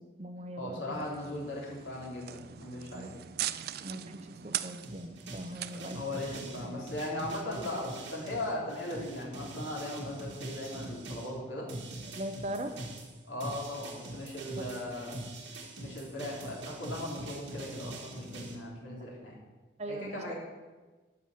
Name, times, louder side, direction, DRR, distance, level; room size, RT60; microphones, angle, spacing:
voice 1, 0.0-1.1 2.9-3.1 3.8-6.0 6.7-6.8 12.2-12.7 14.6-14.7 19.0-19.1 19.8-20.3, right 1 dB, 35° right, 7 dB, 0.8 m, -40 dB
voice 2, 0.6-3.1 3.8-3.9 5.7-11.7 13.3-15.2 15.8-19.3 19.9-20.3, left 1 dB, 75° left, -3 dB, 3.4 m, -38 dB
sound 1, 0.9-7.0, right 12 dB, 50° right, 0.4 m, -41 dB
sound 2, 4.8-11.3 11.7-18.6, right 2 dB, 70° right, 2.0 m, -43 dB
11.5 x 5.7 x 7.5 m, 1.3 s
head